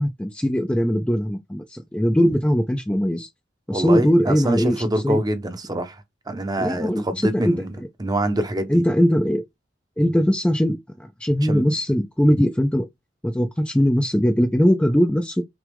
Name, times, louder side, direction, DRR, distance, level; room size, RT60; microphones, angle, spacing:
voice 1, 0.0-3.3 3.7-5.2 6.6-7.5 8.7-9.4 10.0-12.9 13.2-15.4, equal, 5° left, 0.4 m, -20 dB
voice 2, 3.7-8.8 11.4-11.7, right 1 dB, 20° right, 0.8 m, -25 dB
6.0 x 2.4 x 3.4 m
head